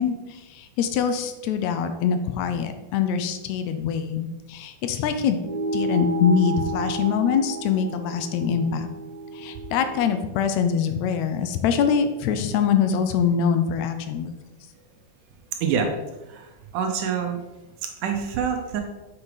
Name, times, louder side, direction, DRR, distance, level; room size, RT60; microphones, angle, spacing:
voice 1, 0.0-5.4 5.7-8.9 9.3-14.3, left 7 dB, 80° left, 8 dB, 1.6 m, -24 dB
sound 1, 5.4-10.2, right 1 dB, 10° left, 1.2 m, -31 dB
voice 2, 16.3-17.4 18.0-18.8, right 7 dB, 75° right, 4 dB, 2.3 m, -26 dB
6.4 x 6.0 x 4.9 m, 1.1 s
omnidirectional pair, 3.9 m